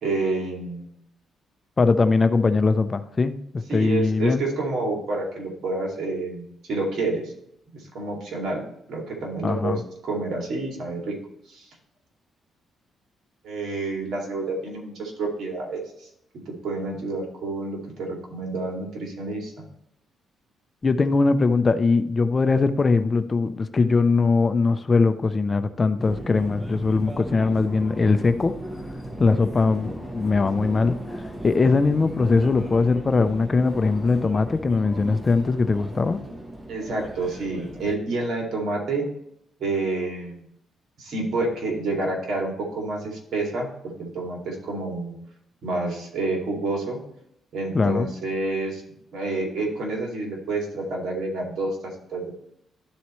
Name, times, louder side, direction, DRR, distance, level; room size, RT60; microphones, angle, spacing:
voice 1, 0.0-1.0 3.7-7.3 7.7-8.6 8.9-9.8 10.1-11.1 11.5-11.7 13.4-16.1 16.5-19.5 36.7-39.0 39.6-40.4 41.0-45.1 45.6-47.0 47.5-48.8 49.1-52.3, right 2 dB, 70° right, -1 dB, 2.4 m, -29 dB
voice 2, 1.8-4.4 9.4-9.8 20.8-28.5 29.2-36.2 47.7-48.1, left 4 dB, 30° left, 10 dB, 0.5 m, -21 dB
Subway metro underground, 26.0-37.9, right 1 dB, 20° right, 1.1 m, -37 dB
12.0 x 4.2 x 3.1 m, 0.75 s
cardioid pair, 90°, 0 cm